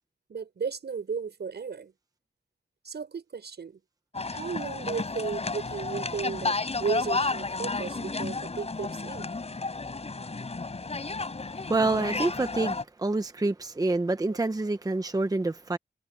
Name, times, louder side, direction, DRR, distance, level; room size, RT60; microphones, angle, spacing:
voice 1, 0.3-1.9 2.8-3.8 4.3-9.3 14.3-14.4, right 6 dB, 80° right, 6.9 m, -35 dB
sound 1, 4.1-12.8, left 3 dB, 40° left, 6.2 m, -32 dB
voice 2, 11.7-15.8, right 2 dB, 20° right, 1.0 m, -27 dB
wide cardioid pair, 130°, 17 cm